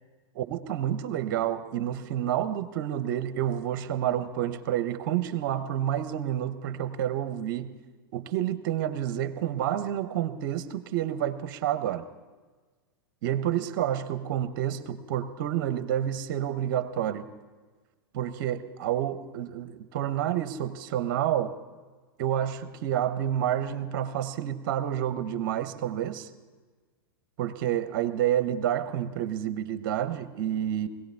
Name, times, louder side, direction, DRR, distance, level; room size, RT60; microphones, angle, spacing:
voice 1, 0.3-7.7 8.1-12.0 13.2-17.3 18.1-21.6 22.2-26.3 27.4-30.9, right 11 dB, 55° right, 11 dB, 1.1 m, -29 dB
22.0 x 17.0 x 3.5 m, 1.4 s
hypercardioid pair, 95°, 12 cm